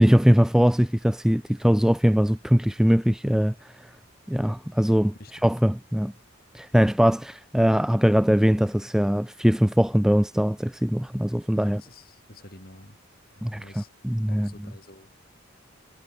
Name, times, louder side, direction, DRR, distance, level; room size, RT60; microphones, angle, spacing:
voice 1, 0.0-3.5 4.3-6.1 6.5-11.8 13.4-14.5, equal, 5° right, 0.4 m, -21 dB
voice 2, 11.5-13.0 13.3-13.9 14.3-15.2, left 1 dB, 45° left, 6.4 m, -48 dB
head